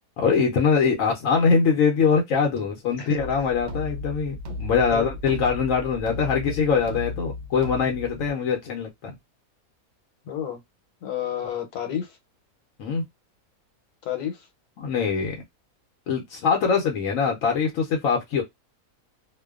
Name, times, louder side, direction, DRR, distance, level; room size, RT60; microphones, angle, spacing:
voice 1, 0.2-9.1 12.8-13.0 14.8-15.4 16.1-18.4, left 5 dB, 70° left, 0.9 m, -23 dB
sound 1, 3.2-8.3, left 2 dB, 65° right, 0.7 m, -35 dB
voice 2, 10.3-10.6 11.0-12.2 14.0-14.5, left 9 dB, 85° left, 1.2 m, -30 dB
2.5 x 2.1 x 2.3 m
omnidirectional pair, 1.6 m